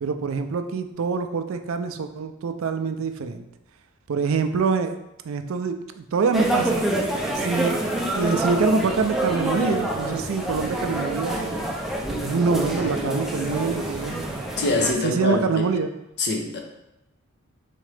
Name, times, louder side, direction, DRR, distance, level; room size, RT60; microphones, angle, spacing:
voice 1, 0.0-3.4 4.1-5.0 5.2-6.8 7.4-11.8 12.2-14.3 15.0-15.9, right 4 dB, 70° right, 8 dB, 0.4 m, -25 dB
sound 1, 6.3-14.9, right 1 dB, ahead, 0.5 m, -27 dB
voice 2, 14.6-15.7 16.2-16.6, left 2 dB, 55° left, 2 dB, 0.8 m, -24 dB
4.2 x 3.7 x 3.3 m, 0.92 s
head